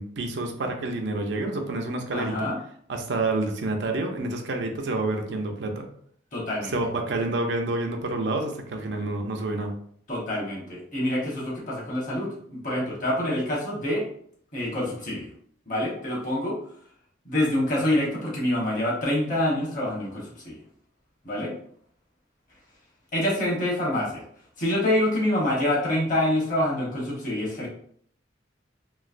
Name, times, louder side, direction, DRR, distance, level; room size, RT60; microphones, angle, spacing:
voice 1, 0.0-2.5 2.9-5.9 6.7-9.8, right 2 dB, 65° right, 3 dB, 0.5 m, -28 dB
voice 2, 2.1-2.6 6.3-6.7 10.1-14.1 14.5-15.3 15.7-16.6 17.2-20.6 21.2-21.5 23.1-24.2 24.6-27.7, left 1 dB, 45° left, -4 dB, 1.1 m, -26 dB
3.1 x 2.9 x 2.5 m, 0.63 s
head